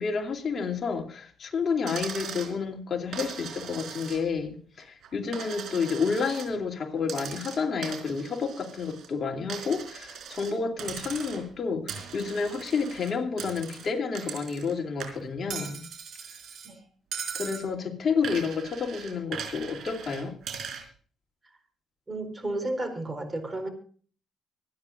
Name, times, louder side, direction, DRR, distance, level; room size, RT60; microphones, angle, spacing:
voice 1, 0.0-15.9 17.3-20.3, left 5 dB, 50° left, 2.8 m, -30 dB
Coin (dropping), 1.9-2.5 3.1-4.4 4.8-6.5 7.0-9.1 9.5-10.5 10.8-11.5 11.9-14.7 15.0-16.7 17.1-17.6 18.2-20.8, right 7 dB, 70° right, 4.2 m, -39 dB
voice 2, 22.1-23.7, right 2 dB, 25° right, 4.3 m, -32 dB
25.5 x 9.9 x 2.5 m
cardioid pair, 90°, 0 cm